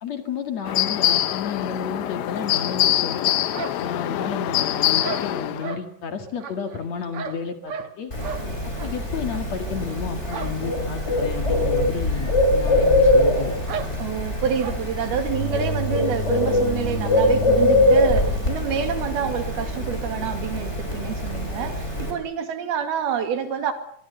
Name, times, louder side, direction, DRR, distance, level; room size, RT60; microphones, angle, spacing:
voice 1, 0.0-3.3 3.8-8.1 8.8-13.5, left 6 dB, 50° left, 6 dB, 3.0 m, -31 dB
sound 1, 0.6-5.7, left 13 dB, 75° left, 2.9 m, -24 dB
sound 2, 3.5-4.6 5.0-5.9 6.4-8.0 8.2-8.5 8.7-8.9 9.3-9.4 10.3-10.6 10.8-10.9 11.3-11.4 12.3-12.4 12.7-12.8 13.7-13.9 14.6-14.8, right 6 dB, 55° right, 1.8 m, -34 dB
Bird, 8.1-22.1, left 1 dB, 15° left, 6.2 m, -23 dB
voice 2, 14.0-23.7, right 7 dB, 85° right, 7 dB, 4.3 m, -27 dB
24.5 x 22.0 x 6.9 m, 0.63 s
omnidirectional pair, 4.3 m